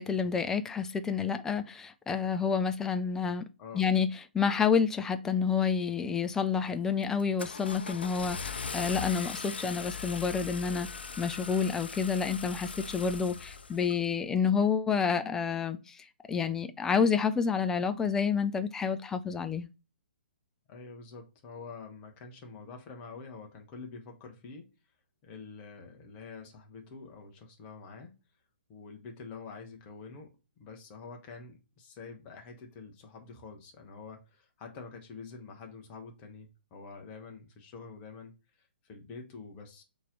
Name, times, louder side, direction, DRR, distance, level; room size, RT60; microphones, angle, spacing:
voice 1, 0.0-3.5 3.7-10.9 11.2-19.7, left 6 dB, 10° left, 0.3 m, -29 dB
voice 2, 3.6-3.9 9.4-9.7 20.7-24.7 25.2-28.2 28.7-39.8, left 4 dB, 25° left, 1.0 m, -47 dB
Car / Engine starting, 6.2-6.6 7.0-14.0, left 5 dB, 65° left, 0.5 m, -40 dB
4.1 x 3.1 x 3.9 m
figure-of-eight pair, 125°, 6 cm